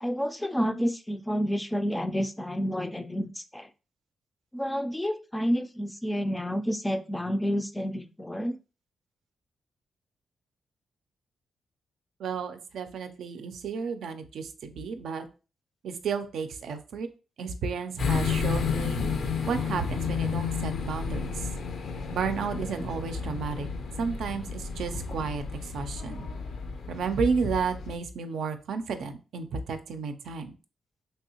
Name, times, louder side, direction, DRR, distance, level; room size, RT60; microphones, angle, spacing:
voice 1, 0.0-3.7 4.5-8.6, equal, 10° left, 8 dB, 0.3 m, -29 dB
voice 2, 12.2-15.3 15.8-17.1 17.4-19.0 19.5-21.4 22.1-23.7 24.0-26.3 26.9-30.5, right 5 dB, 80° right, 8 dB, 0.4 m, -32 dB
sound 1, 18.0-28.0, left 5 dB, 70° left, 0.5 m, -32 dB
3.3 x 2.7 x 2.8 m, 0.33 s
cardioid pair, 80°, 0 cm